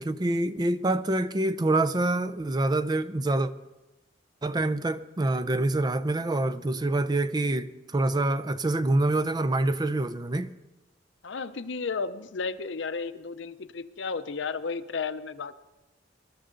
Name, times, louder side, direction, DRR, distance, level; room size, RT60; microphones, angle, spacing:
voice 1, 0.0-3.5 4.4-10.5, right 2 dB, 20° right, 0.4 m, -26 dB
voice 2, 11.2-15.6, left 4 dB, 70° left, 0.7 m, -33 dB
22.0 x 12.0 x 3.9 m
head